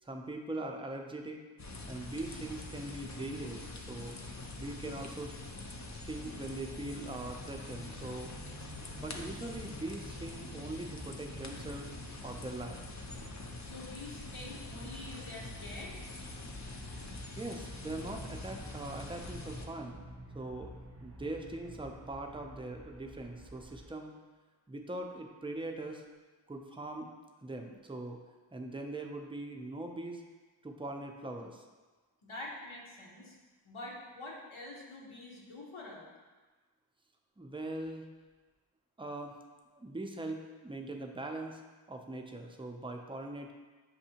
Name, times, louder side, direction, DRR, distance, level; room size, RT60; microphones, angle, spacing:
voice 1, 0.0-1.4 1.9-4.2 4.5-5.3 6.0-8.3 9.0-11.9 12.2-12.8 17.4-20.0 20.3-20.7 21.0-24.1 24.7-26.0 26.5-27.1 27.4-28.2 28.5-30.2 30.6-31.6 37.4-38.1 39.0-39.4 39.7-41.6 41.9-43.5, right 2 dB, 10° right, 3 dB, 0.4 m, -41 dB
sound 1, 1.6-19.7, left 2 dB, 35° left, 0.5 m, -45 dB
sound 2, 5.7-23.9, equal, 30° right, 0.8 m, -51 dB
voice 2, 13.6-15.9 32.2-33.4 33.6-36.1, left 2 dB, 80° left, -4 dB, 1.0 m, -46 dB
6.5 x 2.6 x 2.8 m, 1.3 s
wide cardioid pair, 45°, 48 cm